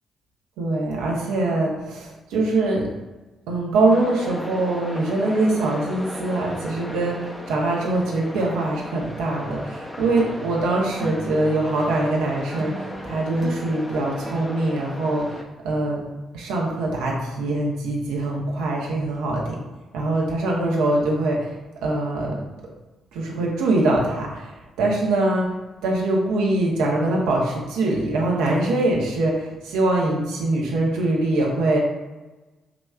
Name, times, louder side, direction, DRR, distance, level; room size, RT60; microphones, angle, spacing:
voice 1, 0.6-2.9 3.5-16.0 16.3-19.6 19.9-21.5 21.8-22.4 23.1-25.5 25.8-31.8, right 2 dB, 80° right, -2 dB, 0.9 m, -23 dB
sound 1, 3.9-15.4, left 1 dB, 20° left, 0.6 m, -36 dB
sound 2, 10.2-15.8, right 1 dB, 30° right, 0.6 m, -39 dB
4.9 x 3.1 x 2.4 m, 1.1 s
hypercardioid pair, 45°, 0 cm